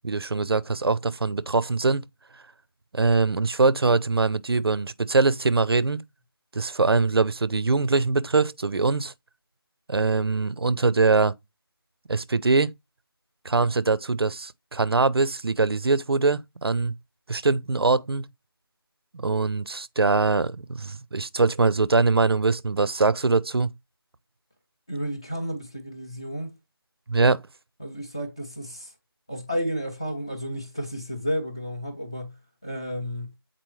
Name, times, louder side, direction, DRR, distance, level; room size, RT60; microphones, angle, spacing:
voice 1, 0.0-2.1 2.9-6.0 6.5-9.1 9.9-11.3 12.1-12.7 13.4-16.9 17.3-18.3 19.1-23.7 27.1-27.4, right 3 dB, 75° right, 0.6 m, -23 dB
voice 2, 24.9-26.5 27.8-28.9 29.3-32.4 32.6-33.3, equal, 10° left, 0.5 m, -32 dB
7.6 x 4.1 x 3.1 m
figure-of-eight pair, 175°, 13 cm